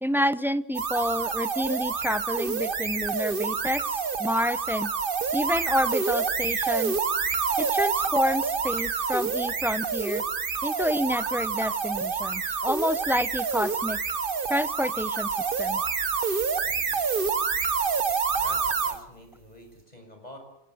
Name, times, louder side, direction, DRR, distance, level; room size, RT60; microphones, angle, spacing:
voice 1, 0.0-4.9 5.3-7.0 7.6-10.2 10.6-14.0 14.5-15.8, equal, ahead, 14 dB, 0.6 m, -28 dB
sound 1, 0.7-19.0, right 5 dB, 50° right, 1.2 m, -28 dB
voice 2, 16.6-17.0 18.4-20.4, left 1 dB, 35° left, 4 dB, 6.5 m, -46 dB
27.0 x 17.0 x 7.9 m, 0.80 s
omnidirectional pair, 1.2 m